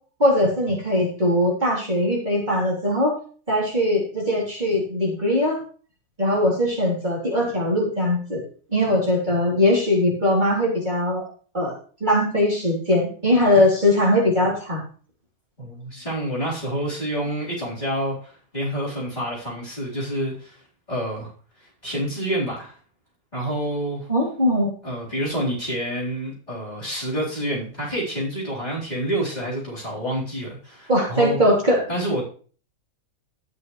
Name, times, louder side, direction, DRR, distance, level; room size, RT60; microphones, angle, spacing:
voice 1, 0.2-3.2 3.5-5.6 6.2-8.4 8.7-11.3 11.5-11.7 12.0-14.8 24.1-24.7 30.9-31.8, left 1 dB, 30° right, -4 dB, 3.7 m, -20 dB
voice 2, 15.6-20.6 20.9-21.3 21.6-22.8 23.3-24.1 24.8-31.4 31.9-32.2, right 1 dB, 25° left, -6 dB, 4.3 m, -28 dB
12.5 x 10.0 x 3.2 m, 0.41 s
omnidirectional pair, 1.5 m